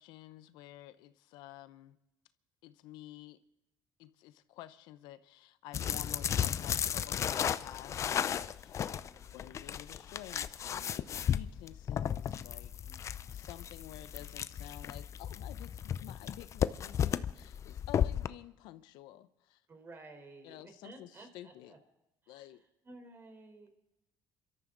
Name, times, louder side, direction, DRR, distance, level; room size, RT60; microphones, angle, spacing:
voice 1, 0.0-2.0 2.6-3.4 4.0-8.8 9.3-13.0 13.3-19.6 20.4-21.7 22.3-22.6, left 14 dB, 85° left, 0.8 m, -51 dB
sound 1, 5.7-18.3, left 9 dB, 45° left, 0.6 m, -34 dB
voice 2, 8.7-9.5 12.8-13.6 19.7-21.8 22.2-23.7, right 2 dB, 30° right, 3.9 m, -55 dB
26.5 x 13.5 x 3.9 m
cardioid pair, 110°, 7 cm